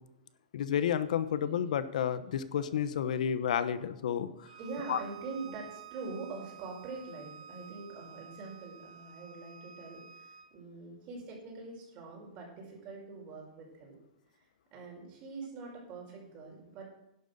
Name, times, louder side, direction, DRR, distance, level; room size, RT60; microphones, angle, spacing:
voice 1, 0.5-4.5 4.9-5.0, left 9 dB, 70° left, 13 dB, 1.0 m, -31 dB
Bowed string instrument, 4.4-10.5, right 8 dB, 85° right, 1.2 m, -51 dB
voice 2, 4.6-14.0 14.3-16.8, right 4 dB, 30° right, -2 dB, 5.5 m, -44 dB
11.0 x 7.9 x 6.7 m, 0.87 s
hypercardioid pair, 150°, 4 cm